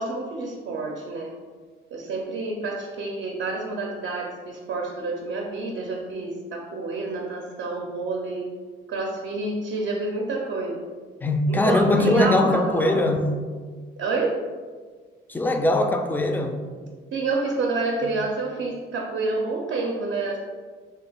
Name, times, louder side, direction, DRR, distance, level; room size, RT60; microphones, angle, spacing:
voice 1, 0.0-1.3 1.9-8.5 8.9-10.8 11.5-13.2 14.0-14.4 17.1-20.4, right 2 dB, 65° right, 0 dB, 0.5 m, -28 dB
voice 2, 11.2-13.3 15.3-16.6 18.0-18.2, left 1 dB, 10° left, 5 dB, 0.3 m, -22 dB
3.3 x 2.3 x 3.3 m, 1.5 s
cardioid pair, 90°, 20 cm